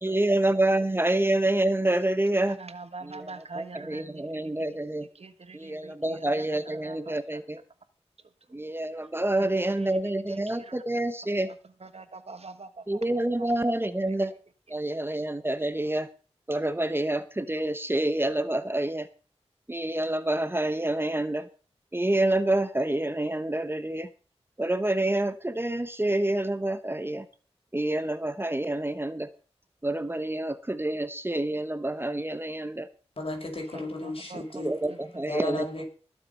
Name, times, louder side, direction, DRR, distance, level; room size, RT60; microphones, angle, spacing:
voice 1, 0.0-2.6 3.0-5.1 5.5-7.6 8.5-11.5 12.9-14.3 14.7-16.1 16.5-19.1 19.7-21.5 21.9-24.1 24.6-27.3 27.7-29.3 29.8-32.9 34.5-35.6, right 1 dB, 20° right, 12 dB, 1.0 m, -27 dB
voice 2, 2.6-4.3 5.2-6.2 6.8-7.2 9.4-9.5 10.7-10.8 11.9-12.7 34.3-34.4, right 3 dB, 65° right, 10 dB, 1.5 m, -43 dB
voice 3, 33.2-34.8 35.2-35.8, left 2 dB, 55° left, 2 dB, 5.3 m, -34 dB
20.0 x 7.2 x 5.4 m, 0.37 s
wide cardioid pair, 55°, 11 cm